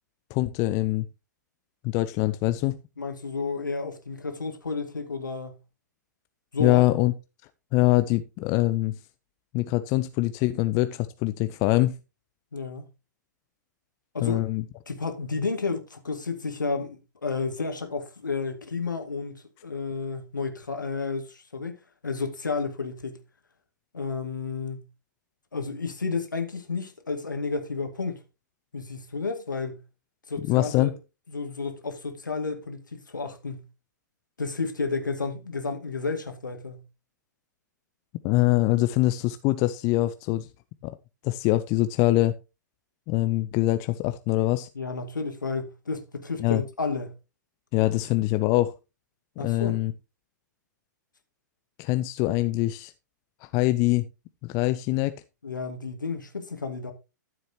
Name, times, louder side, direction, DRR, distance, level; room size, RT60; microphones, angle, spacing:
voice 1, 0.3-1.1 1.8-2.8 6.6-7.1 7.7-9.0 9.5-11.9 14.2-14.6 30.5-30.9 38.2-40.5 40.8-40.9 41.2-42.3 43.1-44.7 46.4-46.6 47.7-48.7 49.4-49.9 51.8-52.9 53.4-54.1 54.4-55.2, left 17 dB, 35° left, 0.7 m, -24 dB
voice 2, 3.0-5.6 6.5-6.8 12.5-12.9 14.1-14.4 14.9-19.4 19.6-21.8 22.0-23.2 23.9-24.8 25.5-28.2 28.7-29.8 30.3-30.9 31.3-33.6 34.4-36.8 44.7-47.1 49.4-49.8 55.4-56.9, left 4 dB, 75° left, 2.3 m, -31 dB
13.0 x 7.6 x 3.0 m
figure-of-eight pair, 105°, 10 cm